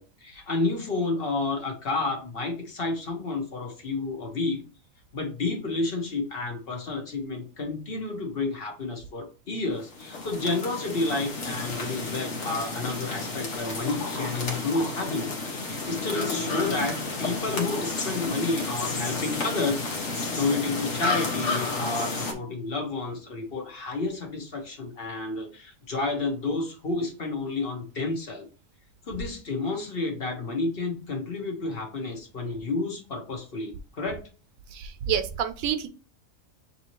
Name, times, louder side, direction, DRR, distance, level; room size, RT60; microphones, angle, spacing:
voice 1, 0.0-4.6 5.1-28.5 29.1-34.2, left 3 dB, 45° left, 2 dB, 1.2 m, -30 dB
sound 1, 9.8-22.3, left 3 dB, 70° left, 1.4 m, -31 dB
voice 2, 34.7-35.9, right 8 dB, 90° right, 10 dB, 1.1 m, -28 dB
6.0 x 2.8 x 3.0 m, 0.35 s
omnidirectional pair, 1.4 m